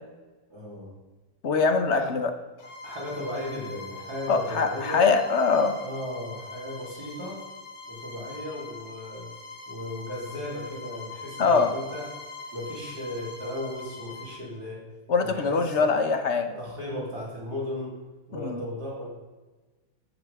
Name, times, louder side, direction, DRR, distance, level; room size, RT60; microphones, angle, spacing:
voice 1, 0.5-0.9 1.9-2.1 2.8-5.1 5.8-7.4 7.9-9.3 9.7-12.1 12.5-14.8 15.2-15.9 16.6-18.0 18.3-19.1, left 1 dB, 45° right, -5 dB, 4.0 m, -36 dB
voice 2, 1.4-2.3 4.3-5.8 11.4-11.7 15.1-16.6 18.3-18.6, left 4 dB, 45° left, 7 dB, 0.9 m, -23 dB
Bowed string instrument, 2.6-14.4, left 3 dB, 65° left, 3.2 m, -43 dB
14.5 x 11.5 x 3.6 m, 1.2 s
omnidirectional pair, 2.4 m